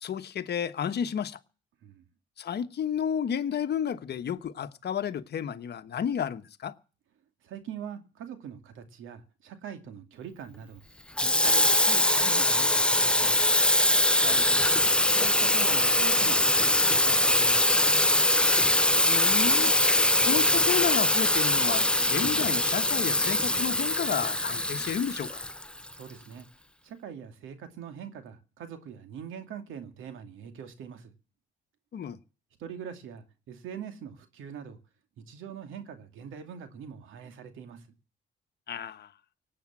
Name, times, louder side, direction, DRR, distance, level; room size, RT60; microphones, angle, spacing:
voice 1, 0.0-1.4 2.4-6.8 14.2-14.8 19.0-19.7 20.2-25.4 31.9-32.2 38.7-39.1, left 8 dB, 55° left, 1.2 m, -32 dB
voice 2, 7.4-10.8 11.2-13.5 14.8-17.8 25.9-26.5 26.8-31.1 32.6-34.8 35.2-37.9, right 8 dB, 85° right, 2.5 m, -42 dB
Water tap faucet / Sink (filling or washing), 11.2-25.9, left 1 dB, 5° left, 0.8 m, -23 dB
18.0 x 8.7 x 7.5 m
cardioid pair, 90°, 20 cm